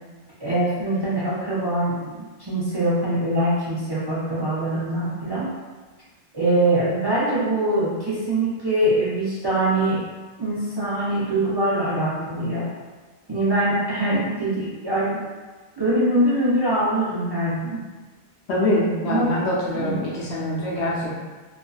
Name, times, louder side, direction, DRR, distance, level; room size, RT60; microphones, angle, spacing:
voice 1, 0.4-5.5 6.3-10.0 10.4-12.7 13.3-15.2 15.8-17.8 19.1-19.5 19.7-20.1, right 1 dB, 35° right, -10 dB, 0.4 m, -23 dB
voice 2, 18.5-21.2, left 1 dB, 85° left, -6 dB, 1.0 m, -24 dB
2.6 x 2.4 x 2.3 m, 1.3 s
omnidirectional pair, 1.1 m